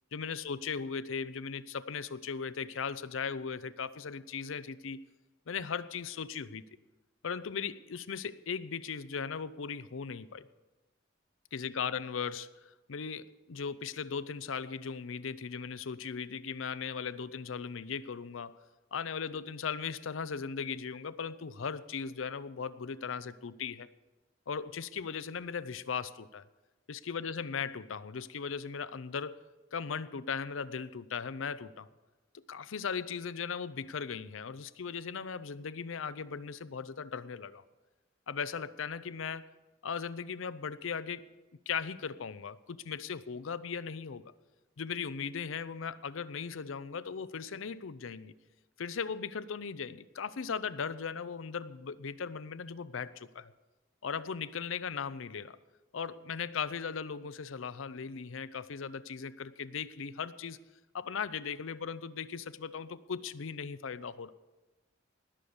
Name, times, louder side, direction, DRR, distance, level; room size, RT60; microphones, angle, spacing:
voice 1, 0.1-5.0 5.5-6.6 7.2-10.5 11.5-18.6 18.9-23.9 24.5-26.5 26.9-29.4 29.7-31.9 32.3-37.6 38.3-39.5 39.8-41.3 41.7-44.3 44.8-48.3 48.8-53.5 54.0-55.6 55.9-60.6 60.9-64.3, left 6 dB, 85° left, 0.6 m, -38 dB
19.0 x 6.6 x 7.1 m
head